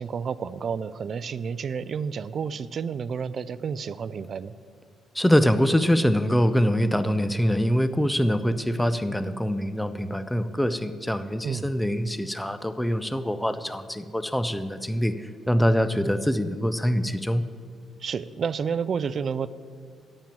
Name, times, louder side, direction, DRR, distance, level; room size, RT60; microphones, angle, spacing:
voice 1, 0.0-4.5 11.4-11.7 18.0-19.5, right 6 dB, 50° right, 17 dB, 0.4 m, -30 dB
voice 2, 5.2-17.4, equal, 5° left, 12 dB, 0.5 m, -24 dB
8.9 x 7.6 x 8.7 m, 2.2 s
cardioid pair, 90°, 0 cm